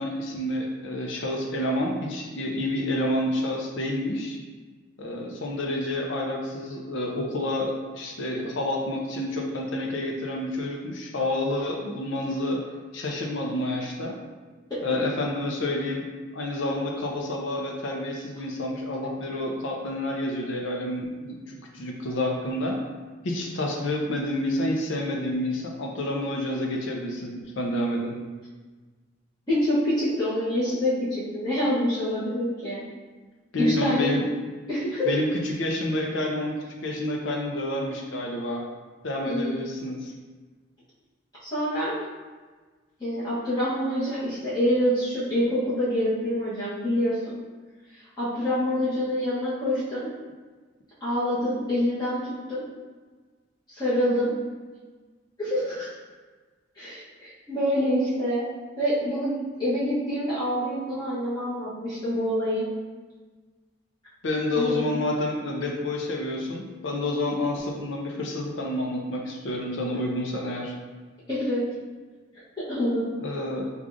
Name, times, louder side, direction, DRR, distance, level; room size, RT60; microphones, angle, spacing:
voice 1, 0.0-4.4 5.0-12.6 12.9-14.2 14.8-16.1 16.3-22.8 23.2-28.2 33.5-34.2 35.1-38.6 39.0-40.1 64.2-70.7 73.2-73.7, left 1 dB, 70° left, 0 dB, 0.6 m, -29 dB
voice 2, 14.7-15.0 29.5-32.8 33.6-34.1 34.7-35.1 39.2-39.7 41.4-42.0 43.0-47.3 48.2-50.1 51.0-52.6 53.7-54.3 55.4-55.9 56.8-58.5 58.8-62.7 64.5-64.8 71.3-71.7 72.6-73.1, equal, 20° left, -12 dB, 1.0 m, -26 dB
4.8 x 2.4 x 2.5 m, 1.4 s
head